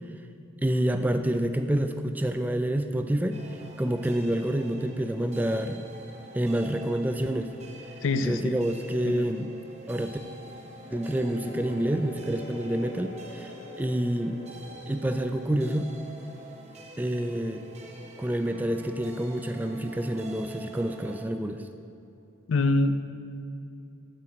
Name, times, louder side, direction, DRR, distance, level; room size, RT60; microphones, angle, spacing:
voice 1, 0.6-3.4 3.8-5.8 6.3-7.5 8.2-9.5 9.9-10.2 10.9-13.5 13.8-14.4 14.9-15.9 17.0-17.6 18.2-21.6, right 1 dB, 10° right, 7 dB, 0.3 m, -28 dB
sound 1, 3.3-21.2, right 2 dB, 35° right, 0.8 m, -47 dB
voice 2, 8.0-8.5 9.0-9.3 22.5-23.1, left 2 dB, 70° left, 11 dB, 0.4 m, -25 dB
sound 2, 10.9-17.7 20.0-21.2, equal, 40° left, 2.6 m, -47 dB
9.3 x 4.6 x 7.7 m, 2.6 s
head